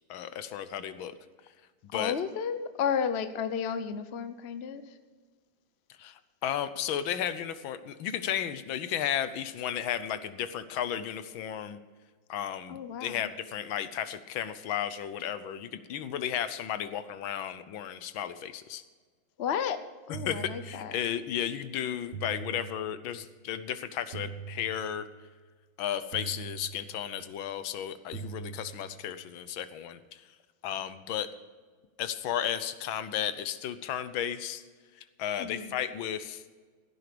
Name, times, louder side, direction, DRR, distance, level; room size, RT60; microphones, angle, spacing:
voice 1, 0.1-1.1 1.9-2.1 6.0-11.8 12.3-18.8 20.2-25.1 25.8-30.2 30.6-31.3 32.0-34.6 35.2-36.4, left 10 dB, 75° left, 12 dB, 1.6 m, -34 dB
voice 2, 1.9-4.9 12.7-13.3 19.4-20.9 35.4-35.8, left 7 dB, 60° left, 11 dB, 0.6 m, -33 dB
sound 1, 20.1-21.3 22.1-23.3 24.1-25.3 26.1-27.3 28.1-29.3, right 6 dB, 75° right, 1.9 m, -43 dB
16.0 x 9.5 x 5.1 m, 1.5 s
omnidirectional pair, 2.2 m